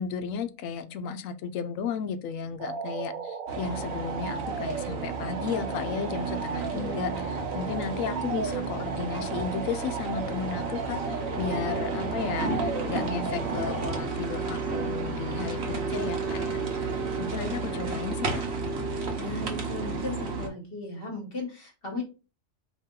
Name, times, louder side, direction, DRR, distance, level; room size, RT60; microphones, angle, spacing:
voice 1, 0.0-7.1 7.5-16.9 17.2-18.4, left 6 dB, 80° left, 10 dB, 1.0 m, -34 dB
sound 1, 2.6-14.0, right 6 dB, 85° right, 1.0 m, -35 dB
sound 2, 3.5-20.5, right 3 dB, 55° right, 1.2 m, -32 dB
voice 2, 6.7-7.3 17.3-18.1 19.2-22.0, left 2 dB, 45° left, 0 dB, 1.3 m, -37 dB
4.2 x 3.0 x 3.7 m, 0.32 s
omnidirectional pair, 1.4 m